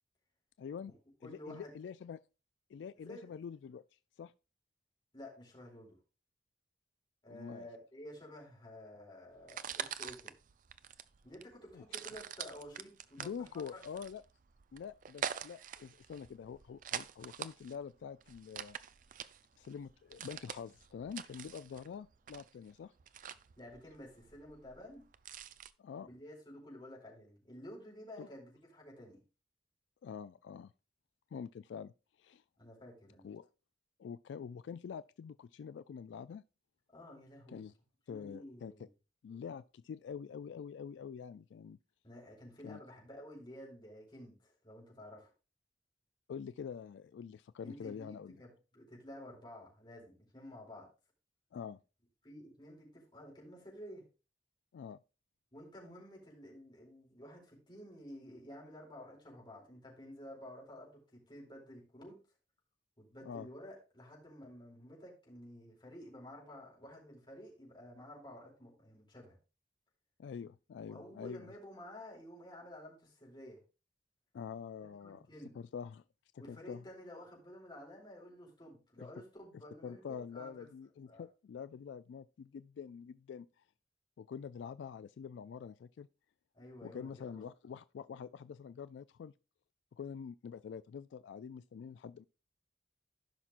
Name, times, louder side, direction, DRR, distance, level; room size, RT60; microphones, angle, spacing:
voice 1, 0.6-0.9 1.2-2.2 2.7-3.8 4.2-4.3 7.3-7.7 11.7-11.8 13.2-14.2 14.7-18.8 19.6-22.9 25.8-26.1 28.2-28.3 30.0-30.7 31.3-31.9 32.2-32.4 33.2-33.5 34.0-36.4 37.5-37.7 38.1-38.7 39.2-41.8 42.6-42.8 46.3-48.3 51.5-51.8 54.7-55.0 63.2-63.5 70.2-71.5 74.3-75.3 75.5-76.0 76.3-76.8 79.0-79.1 79.8-83.6 84.2-86.1 86.8-89.3 89.9-92.2, left 7 dB, 80° left, 0.3 m, -46 dB
voice 2, 1.2-1.7 3.0-3.4 5.1-6.0 7.2-10.3 11.2-13.8 23.6-25.1 26.1-29.2 32.6-33.3 36.9-37.7 38.1-38.9 42.0-45.3 47.6-50.9 52.2-54.0 55.5-62.2 63.0-69.4 70.9-73.6 74.8-75.6 76.4-80.6 81.1-81.3 86.5-87.5, left 1 dB, 25° left, 4.3 m, -52 dB
sound 1, 9.4-25.7, right 8 dB, 50° right, 0.4 m, -45 dB
15.5 x 5.8 x 2.5 m
head